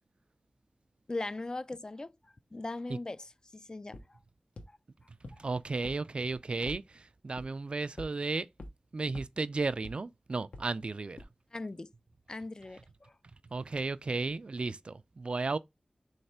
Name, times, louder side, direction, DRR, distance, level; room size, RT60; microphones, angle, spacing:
voice 1, 1.1-4.2 5.3-5.4 11.5-11.9 12.3-13.1, left 2 dB, 35° left, 0.3 m, -40 dB
sound 1, 3.9-4.0 4.6-4.7 5.2-5.3 5.8-5.9 6.3-6.8 7.4-7.5 8.0-8.1 8.6-8.7 9.2-9.3 9.8-9.9 10.5-10.6 11.2-11.3, left 1 dB, 75° left, 0.9 m, -43 dB
voice 2, 5.1-8.5 8.9-11.3 13.5-15.6, right 3 dB, 50° right, 0.3 m, -34 dB
3.3 x 3.2 x 4.2 m
wide cardioid pair, 65°, 2 cm